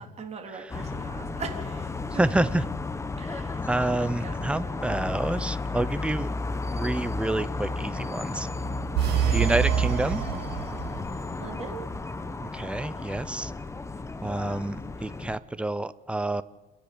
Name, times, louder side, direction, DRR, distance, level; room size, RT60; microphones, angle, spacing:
voice 1, 0.0-2.2 3.2-3.7 4.0-4.9 9.1-9.4 11.4-11.9, right 5 dB, 40° right, 2 dB, 3.6 m, -41 dB
sound 1, 0.7-15.4, left 3 dB, 15° left, 1.1 m, -33 dB
voice 2, 2.2-2.6 3.7-6.3 6.7-8.5 9.3-10.2 12.4-13.5 14.2-16.4, right 2 dB, 5° right, 15 dB, 0.8 m, -28 dB
sound 2, 8.9-11.2, right 8 dB, 75° right, 5.4 m, -26 dB
29.0 x 10.5 x 8.6 m, 1.2 s
cardioid pair, 110°, 17 cm